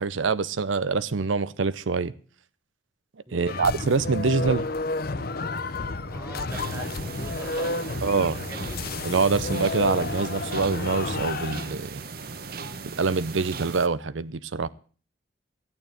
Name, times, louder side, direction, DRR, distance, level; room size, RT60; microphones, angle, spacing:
voice 1, 0.0-2.1 3.3-4.7 8.0-8.4 9.0-12.0 13.0-14.7, right 4 dB, 90° right, 0.7 m, -25 dB
voice 2, 3.3-3.6 6.1-8.8, right 1 dB, 15° right, 0.9 m, -43 dB
sound 1, 3.5-11.8, left 3 dB, 50° left, 0.7 m, -31 dB
sound 2, 6.5-13.9, right 4 dB, 50° right, 1.0 m, -38 dB
13.5 x 9.2 x 7.9 m
head